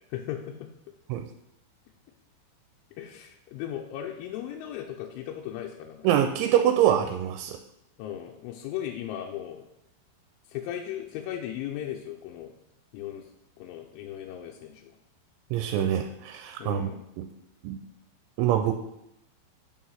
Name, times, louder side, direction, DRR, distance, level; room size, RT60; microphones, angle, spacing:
voice 1, 0.1-0.6 3.0-6.1 8.0-9.7 10.5-12.5 12.9-13.3 13.6-14.9 16.6-17.0, left 11 dB, 85° left, 1 dB, 3.1 m, -37 dB
voice 2, 6.0-7.6 15.5-16.9 17.2-17.3 17.6-17.8 18.4-18.7, right 10 dB, 85° right, 6 dB, 2.9 m, -24 dB
8.5 x 4.7 x 5.7 m, 0.81 s
omnidirectional pair, 5.4 m